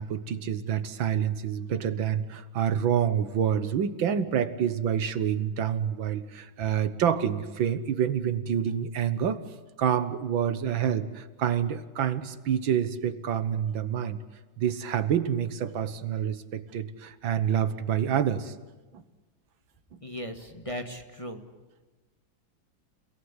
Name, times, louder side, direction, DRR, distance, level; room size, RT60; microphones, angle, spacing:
voice 1, 0.0-9.4 9.8-14.2 14.6-18.5 18.9-19.0 19.9-20.0, right 8 dB, 75° right, 13 dB, 1.9 m, -27 dB
voice 2, 20.0-21.4, equal, 15° left, 5 dB, 1.6 m, -37 dB
30.0 x 18.0 x 9.8 m, 1.2 s
omnidirectional pair, 2.2 m